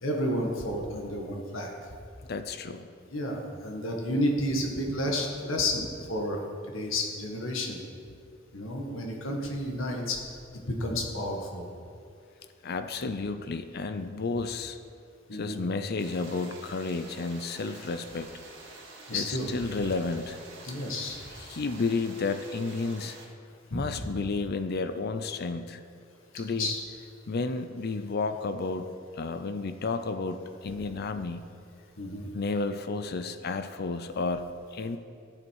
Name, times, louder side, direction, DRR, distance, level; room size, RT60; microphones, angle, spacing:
voice 1, 0.0-1.7 3.1-6.5 6.7-7.8 8.5-10.2 10.8-11.7 15.3-15.6 19.1-19.5 20.6-21.2 23.7-23.9 26.3-26.8 32.0-32.3, left 1 dB, 85° left, 1 dB, 1.8 m, -31 dB
voice 2, 2.3-2.9 12.6-14.8 15.3-18.3 19.1-20.4 21.4-23.2 23.7-25.8 26.3-26.7 27.3-31.4 32.3-35.0, left 3 dB, 50° left, 10 dB, 0.5 m, -32 dB
sound 1, 16.0-23.3, right 3 dB, 65° right, 1.9 m, -48 dB
14.0 x 7.9 x 4.7 m, 2.4 s
head